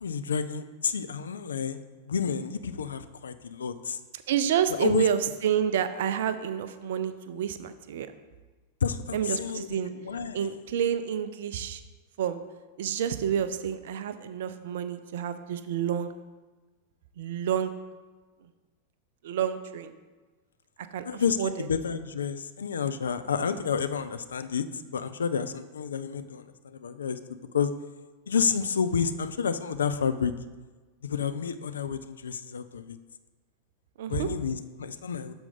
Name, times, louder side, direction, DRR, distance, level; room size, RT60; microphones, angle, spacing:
voice 1, 0.0-1.8 2.1-4.0 4.8-5.1 8.8-9.7 9.9-10.4 21.0-24.7 24.9-27.2 27.5-27.7 28.3-30.3 31.0-33.0 34.1-35.3, left 6 dB, 70° left, 11 dB, 0.3 m, -30 dB
voice 2, 4.3-8.1 9.1-9.9 10.3-11.8 12.2-12.4 12.8-16.1 17.2-17.7 19.2-19.9 20.9-21.7 34.0-34.3, right 9 dB, 55° right, 11 dB, 0.4 m, -29 dB
6.8 x 4.4 x 3.9 m, 1.3 s
figure-of-eight pair, 90°, 0 cm